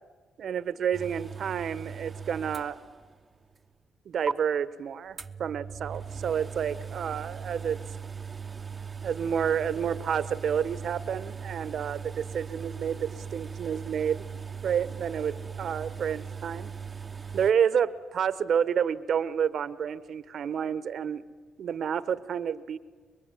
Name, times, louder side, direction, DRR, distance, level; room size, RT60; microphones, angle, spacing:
voice 1, 0.4-2.8 4.1-7.8 9.0-14.2 14.6-16.7 17.3-21.2 21.6-22.8, right 8 dB, 60° right, 14 dB, 1.1 m, -29 dB
sound 1, 0.9-3.2 3.6-3.7 4.3-4.4 5.2-17.5, right 6 dB, 30° right, 0.8 m, -39 dB
25.5 x 22.5 x 9.8 m, 1.5 s
cardioid pair, 90°, 0 cm